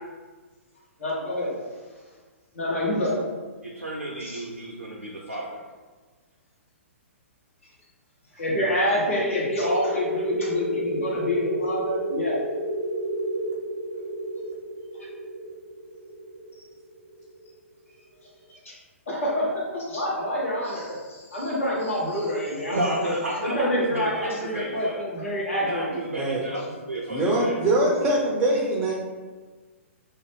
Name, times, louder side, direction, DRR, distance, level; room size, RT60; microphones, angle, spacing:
voice 1, 1.0-1.5 2.5-3.2 4.2-4.4 8.3-12.4 18.6-18.7 19.1-23.2 23.4-26.0, equal, 75° left, -6 dB, 1.0 m, -27 dB
voice 2, 3.6-5.6 22.7-25.0 25.6-27.6, right 1 dB, 90° right, -3 dB, 0.5 m, -31 dB
sound 1, 9.2-17.5, equal, 40° left, 0.6 m, -31 dB
voice 3, 27.1-28.9, right 1 dB, 10° right, -4 dB, 0.4 m, -23 dB
2.4 x 2.1 x 3.3 m, 1.4 s
figure-of-eight pair, 120°, 7 cm